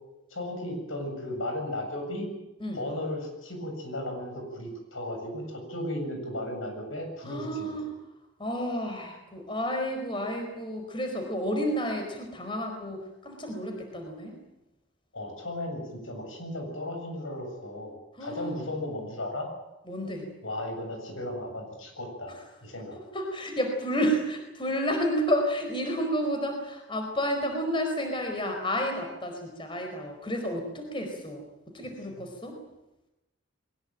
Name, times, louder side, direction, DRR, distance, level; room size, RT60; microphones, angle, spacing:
voice 1, 0.3-2.3 2.7-7.8 15.1-17.9 18.2-19.5 20.4-22.3 22.6-23.0 32.1-32.2, left 1 dB, 85° left, 4 dB, 7.6 m, -35 dB
voice 2, 7.2-7.9 8.4-14.4 18.2-18.5 19.9-20.3 22.3-22.4 23.1-31.4 31.7-32.6, equal, 25° left, 4 dB, 4.6 m, -31 dB
22.0 x 20.5 x 9.1 m, 0.95 s
head